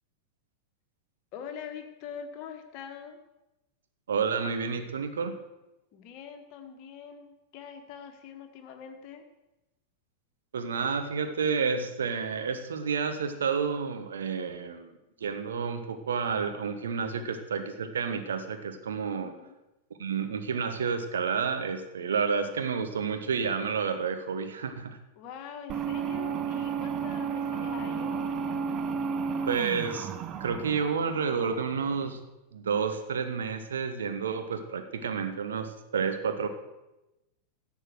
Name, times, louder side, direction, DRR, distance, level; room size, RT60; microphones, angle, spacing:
voice 1, 1.3-3.2 5.9-9.3 19.2-19.6 25.1-28.2, left 7 dB, 40° left, 5 dB, 1.6 m, -44 dB
voice 2, 4.1-5.4 10.5-14.9 15.2-19.4 20.0-25.0 29.5-30.1 30.4-32.2 32.5-36.5, right 6 dB, 65° right, 7 dB, 1.2 m, -30 dB
sound 1, 25.7-32.1, right 6 dB, 30° right, 0.9 m, -33 dB
11.0 x 7.1 x 7.7 m, 0.98 s
figure-of-eight pair, 90°, 0 cm